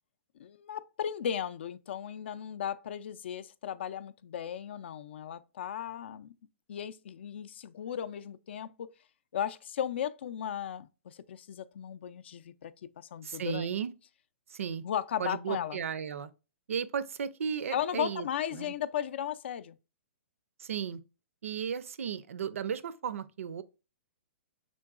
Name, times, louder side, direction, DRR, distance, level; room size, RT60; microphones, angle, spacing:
voice 1, 0.4-6.3 6.7-8.9 9.3-12.7 13.0-13.7 14.8-15.8 17.7-19.8, left 9 dB, 55° left, 0.4 m, -36 dB
voice 2, 13.2-13.9 14.5-14.8 15.2-16.3 16.7-18.3 18.5-18.7 20.6-21.0 21.4-23.6, right 7 dB, 80° right, 0.5 m, -35 dB
5.2 x 3.7 x 2.4 m
hypercardioid pair, 170°, 7 cm